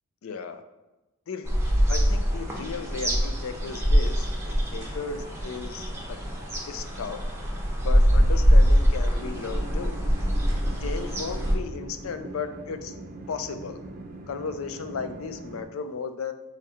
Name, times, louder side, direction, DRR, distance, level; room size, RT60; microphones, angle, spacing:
voice 1, 0.2-0.6 1.3-1.5 1.9-6.2 6.7-7.2 7.8-10.0 10.8-12.9 13.3-13.8 14.3-16.3, left 5 dB, 70° left, 9 dB, 0.4 m, -35 dB
sound 1, 1.5-11.5, equal, 10° right, 0.7 m, -23 dB
sound 2, 9.1-15.6, right 2 dB, 40° right, 0.5 m, -41 dB
4.1 x 3.2 x 3.7 m, 1.1 s
head